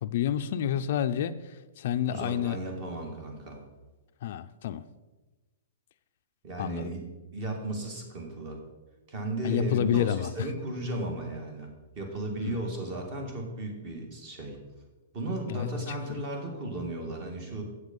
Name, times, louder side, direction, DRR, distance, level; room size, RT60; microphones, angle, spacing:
voice 1, 0.0-2.6 4.2-4.9 6.6-6.9 9.4-10.3 12.4-12.7 15.5-15.7 16.1-16.2, left 10 dB, 50° left, 8 dB, 0.4 m, -29 dB
voice 2, 2.1-3.6 6.4-7.0 7.3-8.6 9.1-14.6 15.1-17.6, right 2 dB, 30° right, 3 dB, 1.9 m, -35 dB
8.0 x 8.0 x 5.3 m, 1.2 s
hypercardioid pair, 170°, 0 cm